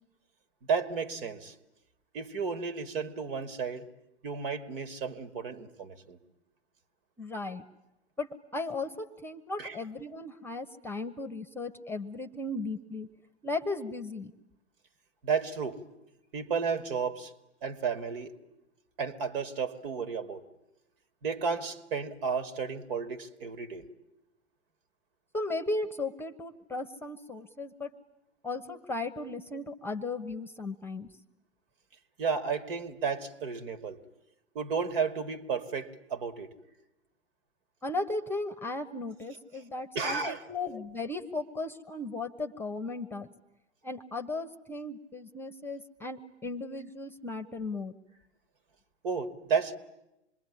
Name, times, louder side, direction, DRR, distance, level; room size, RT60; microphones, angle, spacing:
voice 1, 0.6-1.5 2.1-3.9 4.2-6.2 9.6-9.7 15.2-15.8 16.3-17.3 17.6-18.3 19.0-20.4 21.2-23.9 32.2-34.0 34.5-36.5 39.9-40.4 49.0-49.8, right 5 dB, 55° right, 13 dB, 2.5 m, -32 dB
voice 2, 7.2-7.6 8.2-13.1 13.4-14.3 25.3-27.9 28.4-31.1 37.8-43.3 43.8-47.9, left 2 dB, 5° left, 9 dB, 1.2 m, -36 dB
27.0 x 22.0 x 9.9 m, 0.90 s
figure-of-eight pair, 100°, 33 cm